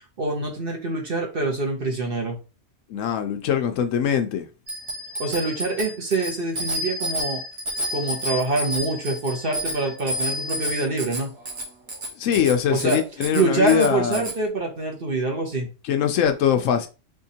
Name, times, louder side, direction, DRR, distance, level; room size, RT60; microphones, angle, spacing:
voice 1, 0.2-2.4 5.2-7.4 7.9-11.3 12.7-13.0 13.3-15.7, right 3 dB, 45° right, 1.2 m, -25 dB
voice 2, 2.9-4.5 12.2-14.3 15.8-16.9, left 8 dB, 75° left, 0.9 m, -22 dB
Bicycle bell, 4.7-14.4, equal, 80° right, 1.6 m, -30 dB
3.9 x 3.6 x 2.8 m
omnidirectional pair, 1.4 m